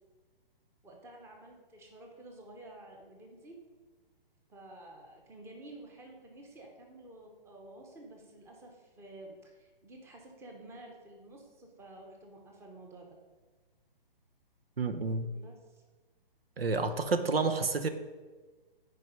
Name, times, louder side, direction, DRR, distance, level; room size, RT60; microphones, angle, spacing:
voice 1, 0.8-3.6 4.5-13.2 15.3-15.8, right 1 dB, 10° right, 1 dB, 0.9 m, -51 dB
voice 2, 14.8-15.3 16.6-17.9, right 3 dB, 85° right, 10 dB, 0.9 m, -29 dB
9.5 x 4.8 x 5.4 m, 1.3 s
hypercardioid pair, 145°, 29 cm